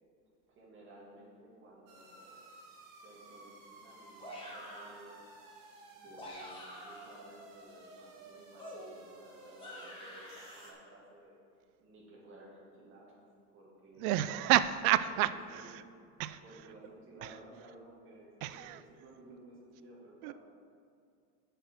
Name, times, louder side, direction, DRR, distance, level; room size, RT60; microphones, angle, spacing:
voice 1, 0.5-2.5 3.0-5.2 6.0-11.3 11.8-13.2 13.5-14.2 15.0-15.7 16.4-20.3, right 1 dB, 30° right, -4 dB, 2.1 m, -55 dB
sound 1, 1.9-10.7, right 2 dB, 50° right, 1.5 m, -55 dB
sound 2, 4.2-5.0 6.0-7.2 8.6-10.7, left 1 dB, 10° left, 1.1 m, -48 dB
voice 2, 14.0-15.8 16.2-16.4 17.2-17.4 18.4-18.8 20.2-20.3, right 13 dB, 85° right, 13 dB, 0.5 m, -30 dB
6.8 x 5.8 x 7.3 m, 2.3 s
cardioid pair, 175°, 43 cm